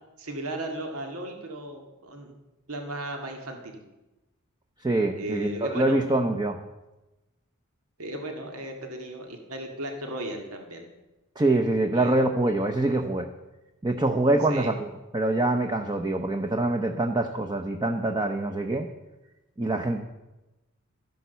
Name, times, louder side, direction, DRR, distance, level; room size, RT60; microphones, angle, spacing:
voice 1, 0.2-2.3 2.7-3.8 5.2-6.0 8.0-10.9 11.9-12.1 14.5-14.7, right 1 dB, 85° right, 3 dB, 2.1 m, -36 dB
voice 2, 4.8-6.6 11.4-13.3 13.8-14.9 15.1-18.9 19.6-20.0, right 2 dB, 20° right, 4 dB, 0.8 m, -25 dB
13.0 x 11.0 x 6.9 m, 1.0 s
head